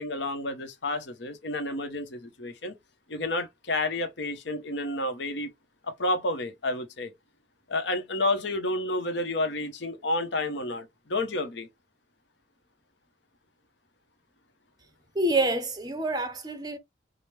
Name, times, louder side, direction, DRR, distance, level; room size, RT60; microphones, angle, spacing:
voice 1, 0.0-2.8 3.1-5.5 5.8-7.1 7.7-11.7, left 2 dB, 65° left, 0.9 m, -30 dB
voice 2, 15.2-16.8, right 2 dB, 20° right, 0.6 m, -27 dB
4.9 x 2.0 x 3.2 m
head